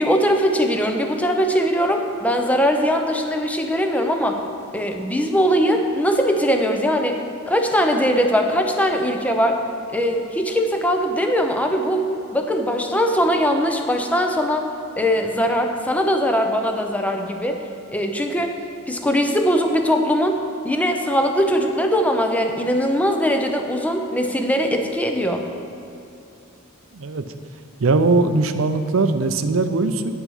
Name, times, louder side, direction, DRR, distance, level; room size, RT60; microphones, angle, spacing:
voice 1, 0.0-4.4 4.7-7.2 7.5-9.6 9.9-14.7 15.0-18.6 18.9-25.5, equal, 5° left, 4 dB, 0.6 m, -21 dB
voice 2, 26.9-27.2 27.8-30.1, right 3 dB, 70° right, 9 dB, 0.5 m, -20 dB
9.5 x 5.9 x 5.5 m, 2.9 s
head